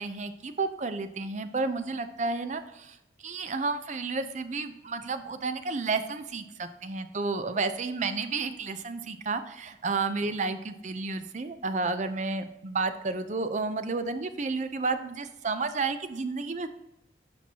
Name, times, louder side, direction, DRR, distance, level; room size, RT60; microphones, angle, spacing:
voice 1, 0.0-3.0 3.2-16.7, right 3 dB, 40° right, 10 dB, 0.5 m, -31 dB
10.5 x 5.8 x 2.9 m, 0.92 s
head